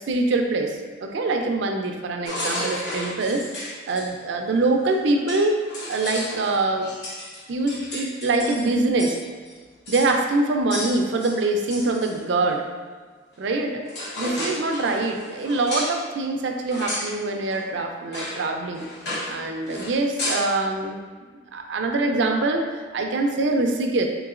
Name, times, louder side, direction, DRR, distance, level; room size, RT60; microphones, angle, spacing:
voice 1, 0.0-3.4 3.9-5.6 5.9-6.9 7.5-9.2 9.9-12.6 13.4-13.8 14.2-18.8 19.3-21.0 21.5-24.0, right 2 dB, 70° right, 3 dB, 0.4 m, -24 dB
sound 1, 2.3-4.1 4.9-5.0 5.3-9.2 9.5-9.6 9.9-10.1 10.7-12.2 13.4-13.6 13.9-16.0 16.7-17.1 17.5-17.6 18.1-18.4 18.7-19.4 19.7-20.5, left 1 dB, 60° left, 1.0 m, -32 dB
3.8 x 3.5 x 2.4 m, 1.5 s
head